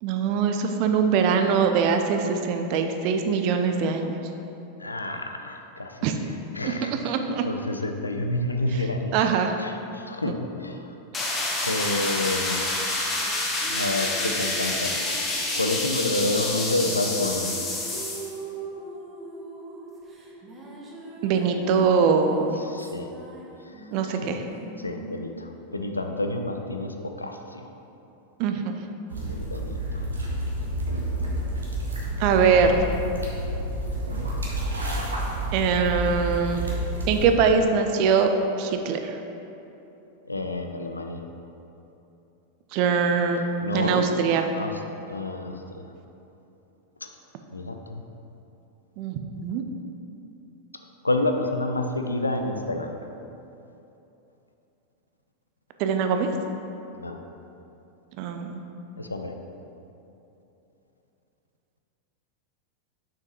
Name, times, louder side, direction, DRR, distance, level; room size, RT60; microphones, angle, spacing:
voice 1, 0.0-4.2 6.0-6.2 6.6-6.7 7.0-7.4 9.1-9.6 10.3-10.4 11.2-11.3 21.2-22.6 23.9-24.4 28.4-28.7 32.2-32.7 35.5-36.7 37.1-38.3 38.6-39.2 42.7-43.4 43.7-44.5 49.0-49.6 55.8-56.3 58.2-58.6, right 6 dB, 45° right, 6 dB, 0.5 m, -22 dB
voice 2, 4.8-6.0 6.5-7.2 7.4-9.2 9.6-11.0 11.6-12.6 13.7-14.9 15.6-17.5 22.6-23.1 23.6-24.3 24.8-27.7 29.3-30.0 40.3-41.2 43.6-44.0 44.5-44.8 45.1-45.9 47.5-48.0 51.0-53.0 56.9-57.2 59.0-59.3, left 2 dB, 80° left, 5 dB, 0.4 m, -29 dB
sound 1, 11.1-18.3, left 2 dB, 20° left, 1.0 m, -28 dB
sound 2, 13.1-26.5, right 2 dB, 20° right, 0.9 m, -42 dB
sound 3, 29.1-37.3, right 1 dB, 75° right, 1.0 m, -29 dB
6.6 x 5.8 x 3.0 m, 2.9 s
figure-of-eight pair, 90°, 0 cm